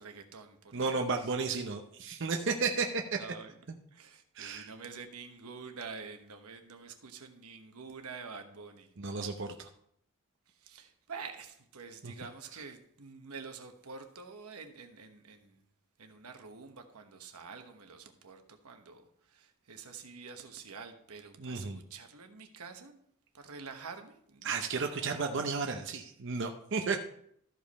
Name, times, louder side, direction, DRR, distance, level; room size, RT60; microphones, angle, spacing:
voice 1, 0.0-1.0 3.2-3.5 3.9-8.9 10.6-15.6 16.0-23.0 23.3-25.4, right 5 dB, 90° right, 6 dB, 1.2 m, -48 dB
voice 2, 0.7-3.2 4.4-4.7 9.0-9.7 12.0-12.1 12.5-12.6 21.4-21.8 24.4-27.0, right 4 dB, 55° right, 4 dB, 0.7 m, -33 dB
13.5 x 5.2 x 4.1 m, 0.69 s
head